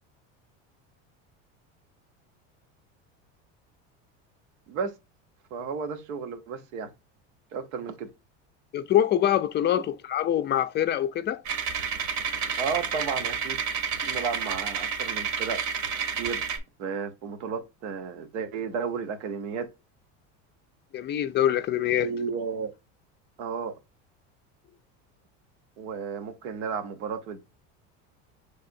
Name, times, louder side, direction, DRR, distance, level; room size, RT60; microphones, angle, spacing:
voice 1, 5.5-6.9 7.5-8.1 9.8-9.9 12.6-13.6 14.0-15.6 16.2-16.5 16.8-19.7 22.0-22.7 23.4-23.8 25.8-27.4, right 5 dB, 90° right, 1.0 m, -33 dB
voice 2, 8.7-11.4 20.9-22.1, left 11 dB, 30° left, 0.4 m, -24 dB
sound 1, 11.4-16.6, right 6 dB, 55° right, 1.1 m, -30 dB
5.5 x 3.4 x 2.5 m
supercardioid pair, 115°, 34 cm